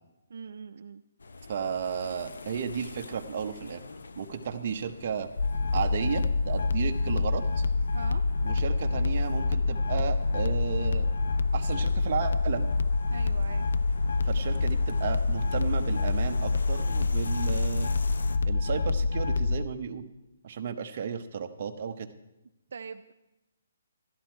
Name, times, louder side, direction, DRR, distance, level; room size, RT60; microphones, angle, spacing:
voice 1, 0.3-1.0 7.9-8.3 13.1-13.7 22.7-23.1, right 5 dB, 60° right, 7 dB, 0.5 m, -42 dB
sound 1, 1.2-18.4, left 3 dB, 90° left, 0.8 m, -45 dB
voice 2, 1.5-3.8 4.2-5.3 5.7-7.6 8.4-11.1 11.5-12.7 14.2-17.9 18.5-20.1 20.4-22.1, right 7 dB, 35° right, 5 dB, 0.8 m, -33 dB
sound 2, 5.4-19.7, left 3 dB, 65° left, 0.4 m, -27 dB
13.5 x 11.0 x 4.4 m, 0.94 s
hypercardioid pair, 175°, 0 cm